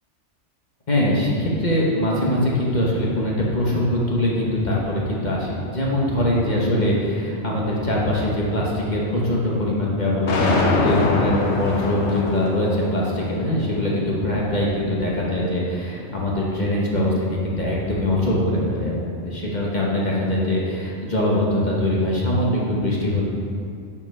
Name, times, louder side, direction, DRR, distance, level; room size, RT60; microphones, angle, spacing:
voice 1, 0.9-23.2, left 1 dB, 40° left, -4 dB, 1.2 m, -22 dB
sound 1, 10.3-16.4, left 3 dB, 70° left, 1.1 m, -26 dB
7.2 x 5.3 x 5.4 m, 2.4 s
omnidirectional pair, 1.2 m